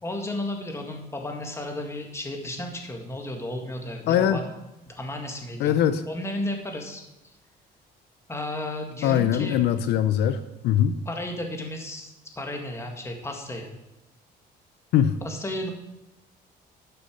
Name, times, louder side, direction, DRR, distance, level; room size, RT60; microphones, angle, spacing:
voice 1, 0.0-4.5 4.9-5.8 6.1-7.0 8.3-9.6 11.1-13.7 15.0-15.7, left 1 dB, 15° left, 3 dB, 2.0 m, -33 dB
voice 2, 4.1-4.4 5.6-6.0 9.0-10.4 10.6-11.0 14.9-15.1, left 10 dB, 75° left, 11 dB, 0.6 m, -21 dB
11.5 x 7.0 x 5.3 m, 0.96 s
cardioid pair, 110°, 17 cm